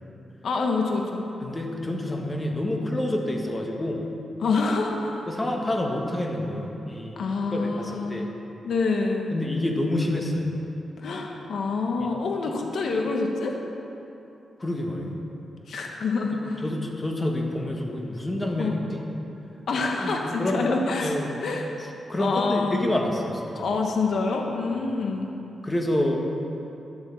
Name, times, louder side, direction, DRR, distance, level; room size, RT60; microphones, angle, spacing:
voice 1, 0.4-1.2 4.4-5.3 7.2-8.3 8.6-9.4 11.0-13.6 15.7-16.6 18.6-18.8 19.7-21.1 21.4-21.7 22.2-22.9 23.5-25.3, left 3 dB, 60° left, 1 dB, 1.2 m, -26 dB
voice 2, 1.4-4.0 5.3-7.2 7.5-8.3 9.3-10.5 14.6-15.2 16.3-19.0 20.0-20.6 21.0-21.3 22.1-23.7 25.6-26.2, left 1 dB, 15° left, 1 dB, 1.4 m, -28 dB
12.0 x 8.0 x 7.0 m, 2.9 s
wide cardioid pair, 155°, 0 cm